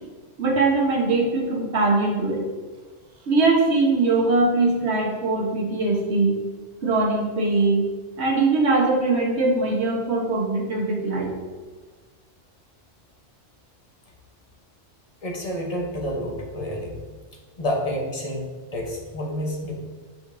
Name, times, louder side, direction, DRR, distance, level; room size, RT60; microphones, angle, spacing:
voice 1, 0.4-2.4 3.3-6.4 6.8-7.9 8.2-11.3, right 3 dB, 65° right, -2 dB, 1.4 m, -21 dB
voice 2, 15.2-17.0 17.6-19.7, equal, 35° left, 0 dB, 0.9 m, -29 dB
6.7 x 5.4 x 2.6 m, 1.4 s
omnidirectional pair, 1.3 m